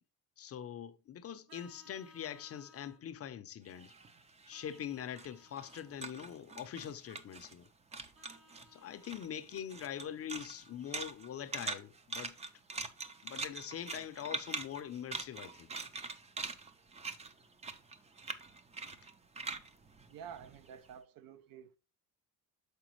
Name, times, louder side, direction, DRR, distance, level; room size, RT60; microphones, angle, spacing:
voice 1, 0.4-3.9 4.5-7.7 8.7-12.3 13.2-15.7, left 9 dB, 40° left, 0.5 m, -43 dB
Vehicle horn car horn honking, 1.5-3.0 4.5-6.0 8.1-9.3, left 1 dB, 80° right, 1.7 m, -61 dB
sound 1, 3.7-7.7 7.9-8.7 9.0-20.9, right 4 dB, 20° right, 0.5 m, -43 dB
voice 2, 20.1-21.7, right 8 dB, 65° right, 0.7 m, -50 dB
6.6 x 5.1 x 3.0 m
cardioid pair, 120°, 37 cm